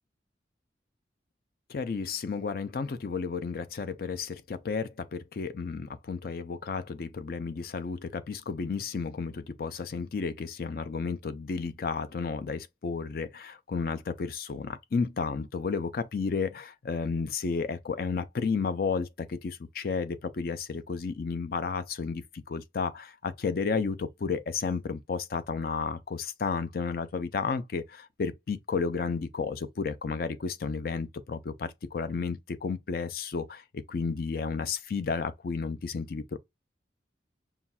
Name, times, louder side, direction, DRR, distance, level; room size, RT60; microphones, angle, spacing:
voice 1, 1.7-36.4, left 5 dB, 55° left, 0.4 m, -32 dB
5.6 x 2.3 x 2.2 m
head